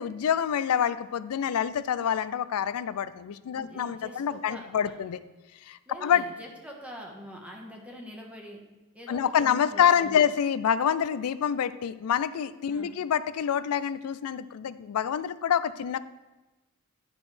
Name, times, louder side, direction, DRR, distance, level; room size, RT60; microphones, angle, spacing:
voice 1, 0.0-5.2 5.7-6.2 9.1-16.0, left 8 dB, 80° left, 16 dB, 0.4 m, -27 dB
voice 2, 3.5-5.0 5.9-8.6 8.9-10.2 12.7-12.9, equal, 5° right, -1 dB, 1.2 m, -44 dB
10.5 x 6.1 x 3.3 m, 1.1 s
head